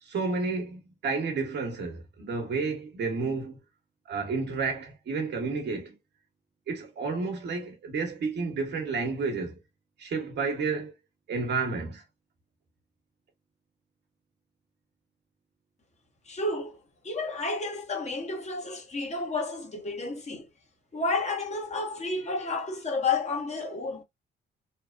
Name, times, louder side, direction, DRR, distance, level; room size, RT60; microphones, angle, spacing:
voice 1, 0.0-3.6 4.1-6.0 6.7-9.6 10.0-10.9 11.3-12.0, right 4 dB, 60° right, 1.1 m, -31 dB
voice 2, 16.3-20.5 20.9-24.0, left 3 dB, 35° left, 0.9 m, -31 dB
2.9 x 2.0 x 2.4 m
cardioid pair, 90°, 20 cm